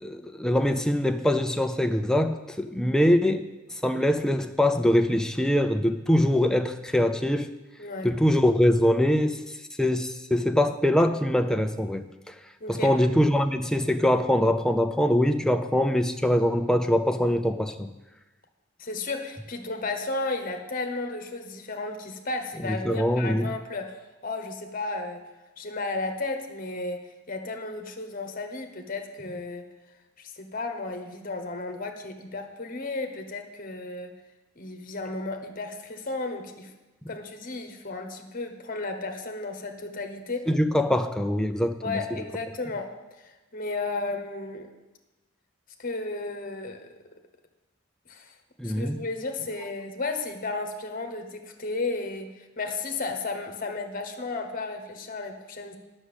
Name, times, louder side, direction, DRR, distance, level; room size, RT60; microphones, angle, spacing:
voice 1, 0.0-3.5 3.8-7.5 8.0-9.4 9.8-12.3 12.7-17.9 22.6-23.5 40.5-42.0 48.6-49.0, left 1 dB, 5° left, 7 dB, 0.4 m, -23 dB
voice 2, 7.8-8.1 12.6-12.9 18.8-25.3 25.6-29.7 30.2-34.2 34.6-36.7 37.1-40.5 41.8-44.7 45.8-46.9 48.1-48.3 48.6-55.8, left 3 dB, 40° left, 5 dB, 1.1 m, -34 dB
10.0 x 6.3 x 8.1 m, 1.1 s
head